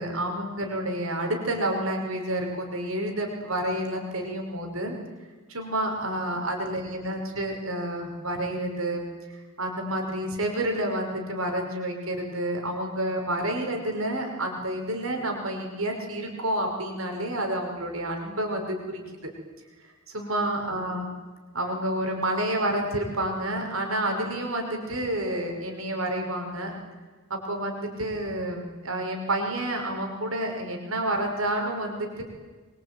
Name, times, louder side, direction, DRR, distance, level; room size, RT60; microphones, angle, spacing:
voice 1, 0.0-5.0 5.5-9.1 9.3-19.3 20.1-21.1 21.5-26.7 27.3-32.2, right 1 dB, 70° right, 2 dB, 5.6 m, -29 dB
25.5 x 23.5 x 9.2 m, 1.3 s
head